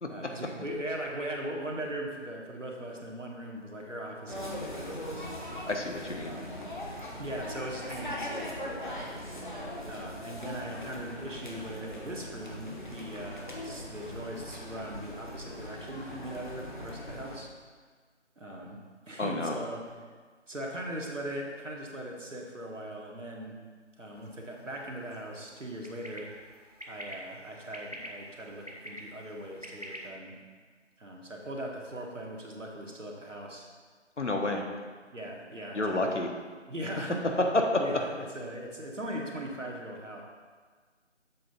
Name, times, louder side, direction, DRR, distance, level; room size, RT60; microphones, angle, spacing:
voice 1, 0.1-5.3 6.2-6.5 7.2-9.1 9.9-17.5 18.4-18.8 19.1-19.8 20.5-23.6 24.0-26.3 26.9-30.4 31.0-33.7 34.5-34.8 35.1-36.2 36.7-37.3 37.8-40.2, right 1 dB, 80° right, -1 dB, 1.6 m, -39 dB
sound 1, 4.3-17.4, left 1 dB, 40° left, 0.9 m, -40 dB
voice 2, 5.7-6.3 19.2-19.6 34.2-34.6 35.7-36.3 37.5-37.8, left 2 dB, 70° left, 2 dB, 1.1 m, -29 dB
sound 2, 24.2-30.1, equal, 35° right, 0.6 m, -47 dB
7.5 x 3.5 x 5.6 m, 1.5 s
figure-of-eight pair, 165°, 37 cm